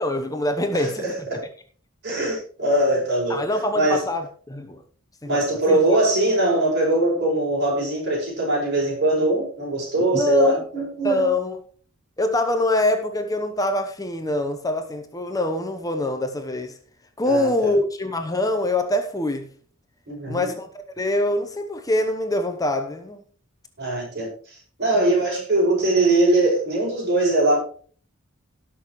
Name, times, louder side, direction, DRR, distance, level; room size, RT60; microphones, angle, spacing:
voice 1, 0.0-1.0 3.3-4.8 5.3-5.8 10.1-10.6 11.0-11.6 12.2-16.7 17.2-19.5 20.3-20.7 21.0-23.2 24.9-25.2, left 1 dB, 15° left, 0.9 m, -24 dB
voice 2, 0.7-1.5 2.0-3.4 3.7-4.0 5.3-11.3 17.3-17.7 20.1-20.5 23.8-27.6, right 2 dB, 55° right, 5.8 m, -22 dB
18.0 x 6.3 x 3.1 m
head